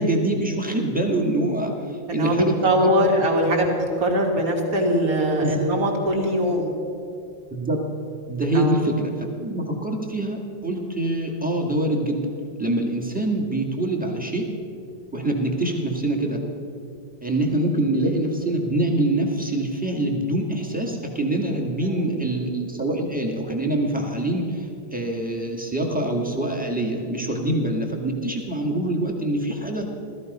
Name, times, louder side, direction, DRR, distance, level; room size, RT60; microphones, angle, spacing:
voice 1, 0.0-3.1 5.3-5.6 7.5-7.8 8.3-12.2 12.6-14.5 15.1-16.4 17.2-29.9, right 1 dB, 5° right, 0 dB, 1.6 m, -25 dB
voice 2, 2.1-3.7 4.0-6.7 8.5-8.8 21.8-22.0, equal, 45° right, 0 dB, 2.6 m, -21 dB
17.0 x 13.5 x 5.4 m, 2.5 s
omnidirectional pair, 2.2 m